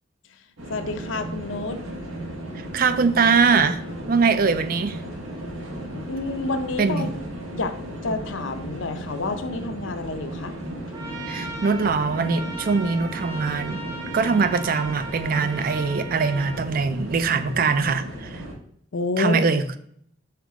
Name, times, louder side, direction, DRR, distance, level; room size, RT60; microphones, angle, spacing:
sound 1, 0.6-18.5, right 1 dB, 80° right, 1.4 m, -35 dB
voice 1, 0.7-1.8 5.9-7.1 7.5-10.5 18.9-19.4, left 3 dB, 75° left, 0.6 m, -29 dB
voice 2, 2.5-3.8 4.1-5.0 6.8-7.1 11.3-13.8 14.1-18.4 19.2-19.6, right 5 dB, 45° right, 0.4 m, -22 dB
Trumpet, 10.9-16.6, right 3 dB, 15° right, 0.9 m, -38 dB
5.8 x 3.6 x 4.7 m
head